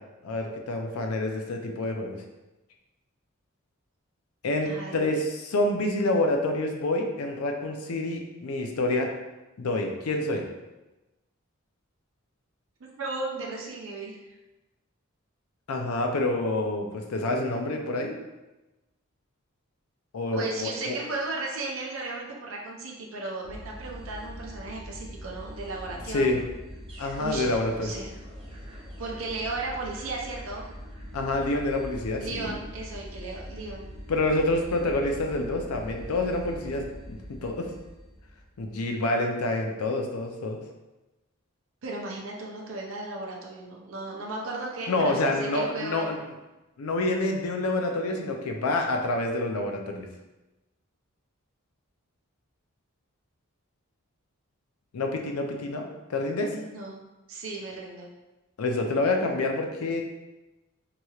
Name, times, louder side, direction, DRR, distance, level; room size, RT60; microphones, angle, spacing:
voice 1, 0.2-2.2 4.4-9.1 9.6-10.4 15.7-18.2 20.1-21.0 26.1-26.4 27.0-27.9 31.1-32.6 34.1-37.7 38.6-40.6 44.9-46.2 46.8-50.1 54.9-56.5 58.6-60.0, left 2 dB, 90° left, 3 dB, 0.5 m, -27 dB
voice 2, 4.7-5.1 13.0-14.2 20.3-26.4 26.9-28.1 29.0-30.6 32.2-33.9 41.8-46.2 56.5-57.0 57.3-58.1, right 2 dB, 70° right, -2 dB, 0.6 m, -35 dB
sound 1, 23.4-38.8, equal, 25° right, 0.4 m, -42 dB
2.9 x 2.9 x 2.3 m, 1.0 s
head